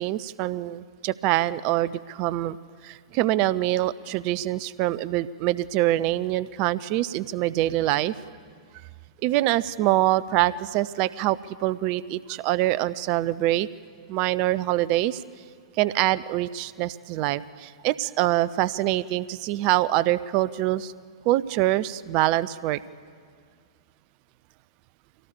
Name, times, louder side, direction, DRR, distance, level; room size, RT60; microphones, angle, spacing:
voice 1, 0.0-2.6 2.8-8.1 9.2-13.7 14.1-15.2 15.8-20.9 21.2-22.8, right 15 dB, 35° right, 18 dB, 0.5 m, -25 dB
24.0 x 17.5 x 7.0 m, 2.1 s
figure-of-eight pair, 105°, 3 cm